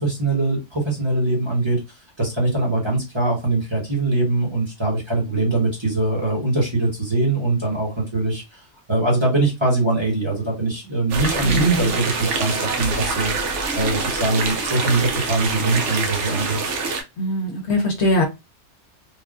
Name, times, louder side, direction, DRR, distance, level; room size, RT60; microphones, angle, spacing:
voice 1, 0.0-1.8 2.2-8.6 8.9-16.6, right 2 dB, 25° right, 1.1 m, -22 dB
sound 1, 11.1-17.0, right 4 dB, 75° right, 1.0 m, -25 dB
voice 2, 11.4-11.9 17.2-18.2, left 1 dB, 65° left, 1.0 m, -22 dB
3.3 x 2.2 x 2.4 m
omnidirectional pair, 1.3 m